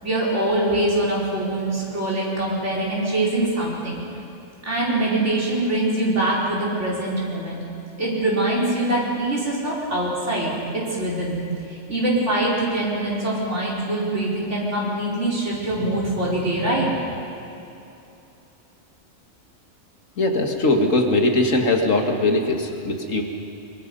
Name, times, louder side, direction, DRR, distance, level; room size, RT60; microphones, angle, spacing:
voice 1, 0.0-4.0 4.7-7.6 8.0-11.4 11.7-17.0, right 1 dB, 65° right, -5 dB, 4.7 m, -23 dB
voice 2, 20.2-23.2, left 2 dB, 85° left, 3 dB, 2.2 m, -20 dB
23.5 x 22.5 x 5.4 m, 2.8 s
omnidirectional pair, 1.3 m